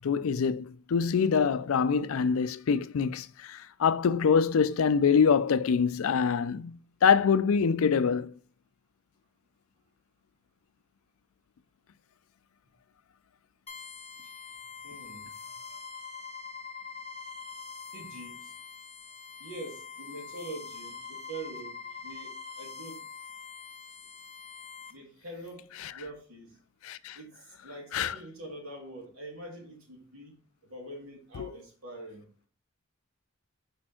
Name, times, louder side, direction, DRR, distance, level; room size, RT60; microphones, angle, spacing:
voice 1, 0.0-8.3 25.8-25.9 26.8-27.2 27.9-28.2 31.3-31.5, left 6 dB, 75° left, 0.4 m, -25 dB
sound 1, 13.7-24.9, left 5 dB, 30° left, 0.9 m, -44 dB
voice 2, 14.8-15.3 17.9-18.5 19.4-23.0 24.9-26.6 27.1-30.3 30.6-32.2, right 2 dB, 80° right, 2.6 m, -44 dB
5.2 x 4.3 x 4.3 m
head